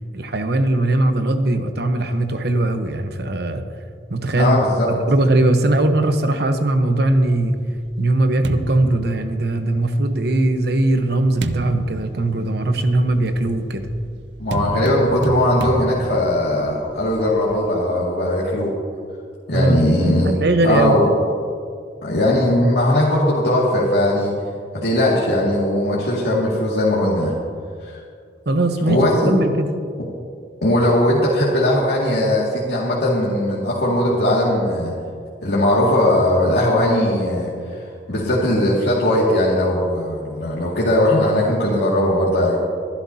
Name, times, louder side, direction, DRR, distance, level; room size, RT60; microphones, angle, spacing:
voice 1, 0.1-3.6 4.1-4.6 4.9-7.6 8.0-13.9 19.5-19.8 20.2-21.0 28.5-29.0 29.3-29.7, right 2 dB, 65° right, 7 dB, 1.0 m, -19 dB
voice 2, 4.4-4.9 14.4-18.7 19.5-20.3 20.6-21.1 22.0-24.4 24.7-27.3 27.8-28.0 28.9-29.4 30.6-34.9 35.4-37.5 38.1-42.6, left 1 dB, 75° left, -7 dB, 2.2 m, -19 dB
sound 1, 7.1-9.9 10.6-17.7, right 2 dB, 80° right, 0.7 m, -31 dB
23.0 x 11.5 x 2.8 m, 2.2 s
head